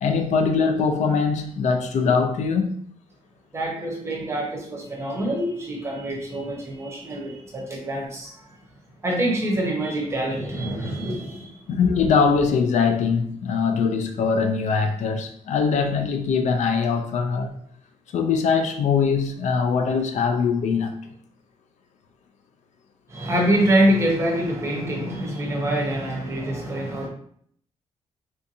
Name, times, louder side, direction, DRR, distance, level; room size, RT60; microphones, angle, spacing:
voice 1, 0.0-2.7 11.7-17.6 18.1-20.9, left 5 dB, 70° left, 0.4 m, -22 dB
voice 2, 3.5-8.3 9.0-11.6 11.9-12.0 23.1-27.1, right 1 dB, 20° right, 0.7 m, -25 dB
3.4 x 2.6 x 2.7 m
wide cardioid pair, 175°, 12 cm